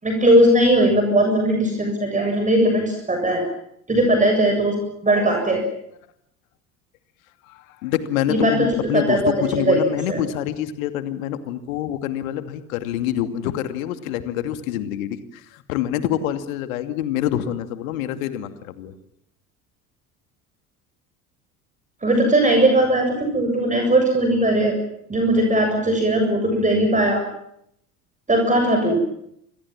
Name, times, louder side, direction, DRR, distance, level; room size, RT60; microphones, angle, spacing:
voice 1, 0.0-3.4 3.9-4.8 5.0-5.6 8.3-9.8 10.1-10.2 22.0-24.8 25.1-27.2 28.3-29.0, right 1 dB, 15° right, 3 dB, 7.5 m, -19 dB
voice 2, 7.5-18.9, left 11 dB, 60° left, 10 dB, 2.7 m, -26 dB
29.0 x 25.5 x 7.5 m, 0.74 s
figure-of-eight pair, 70°, 45 cm